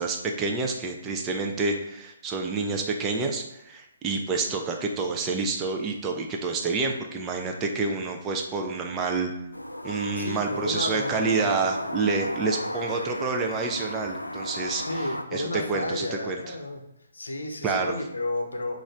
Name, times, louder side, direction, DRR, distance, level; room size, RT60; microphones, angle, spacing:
voice 1, 0.0-9.3 9.8-16.5 17.6-17.9, right 4 dB, 15° right, 2 dB, 0.5 m, -28 dB
sound 1, 9.5-15.2, left 1 dB, 85° left, 0.3 m, -34 dB
voice 2, 10.1-11.7 14.9-16.8 17.1-18.8, left 2 dB, 70° left, 4 dB, 0.7 m, -32 dB
6.1 x 2.6 x 3.2 m, 0.87 s
figure-of-eight pair, 135°, 0 cm